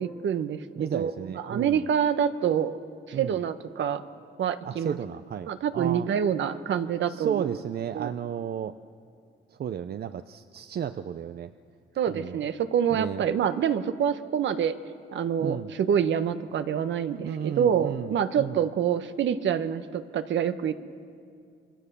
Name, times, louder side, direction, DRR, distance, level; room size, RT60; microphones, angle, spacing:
voice 1, 0.0-2.8 3.2-4.0 4.4-5.0 5.5-7.6 7.9-8.1 12.0-14.8 15.1-20.7, right 8 dB, 70° right, 10 dB, 1.3 m, -26 dB
voice 2, 0.8-1.8 3.1-3.4 4.6-6.1 7.1-8.8 9.6-11.5 12.1-12.4 12.9-13.2 15.4-15.7 17.2-18.6, right 8 dB, 55° right, 11 dB, 0.7 m, -33 dB
27.5 x 24.0 x 6.9 m, 2.3 s
cardioid pair, 90°, 20 cm